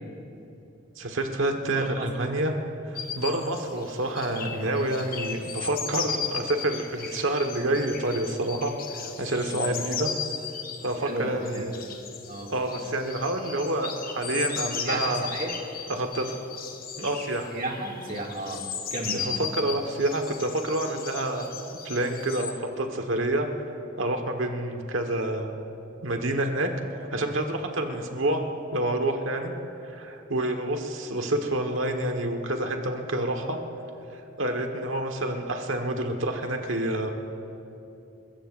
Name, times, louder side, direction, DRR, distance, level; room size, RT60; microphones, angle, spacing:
voice 1, 1.0-2.5 2.9-10.1 10.8-11.7 12.5-15.3 15.9-16.4 17.0-17.5 19.1-21.5 21.8-23.5 24.0-25.5 26.0-26.7 27.0-28.4 28.7-29.5 29.8-33.6 34.1-37.1, right 1 dB, 75° right, 4 dB, 1.4 m, -28 dB
voice 2, 1.7-2.1 9.5-9.8 11.0-11.7 12.3-12.5 14.8-15.5 17.5-18.6 18.9-19.4, right 1 dB, 45° right, -1 dB, 2.3 m, -33 dB
sound 1, 2.9-22.5, left 6 dB, 50° left, 1.1 m, -36 dB
29.5 x 14.5 x 2.6 m, 2.8 s
head